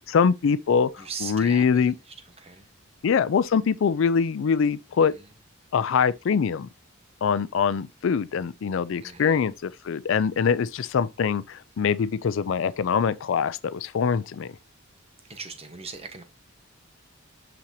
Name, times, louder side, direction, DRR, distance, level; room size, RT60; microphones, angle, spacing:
voice 1, 0.1-0.9 1.2-1.9 3.0-5.1 5.7-6.7 7.2-14.5, left 6 dB, 65° left, 0.4 m, -23 dB
voice 2, 1.0-2.7 5.0-5.3 9.0-9.4 15.2-16.2, right 4 dB, 30° right, 1.0 m, -40 dB
6.2 x 5.8 x 2.7 m
head